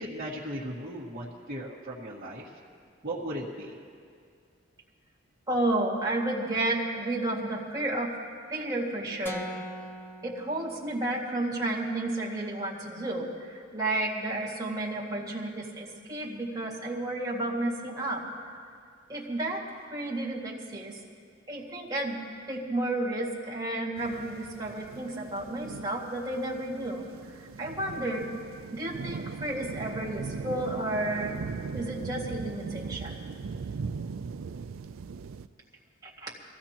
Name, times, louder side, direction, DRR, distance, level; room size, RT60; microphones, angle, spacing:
voice 1, 0.0-2.5 3.0-3.7, right 1 dB, 40° right, -8 dB, 1.6 m, -37 dB
voice 2, 5.5-8.1 8.5-9.5 10.2-18.2 19.1-19.6 19.9-21.0 21.5-22.2 22.5-28.3 28.7-31.4 31.7-33.3 36.0-36.3, right 1 dB, 20° right, -4 dB, 2.1 m, -32 dB
sound 1, 9.3-11.4, equal, 10° left, 0.7 m, -41 dB
sound 2, 24.0-35.5, right 5 dB, 85° right, 0.4 m, -39 dB
23.0 x 15.5 x 3.0 m, 2.3 s
head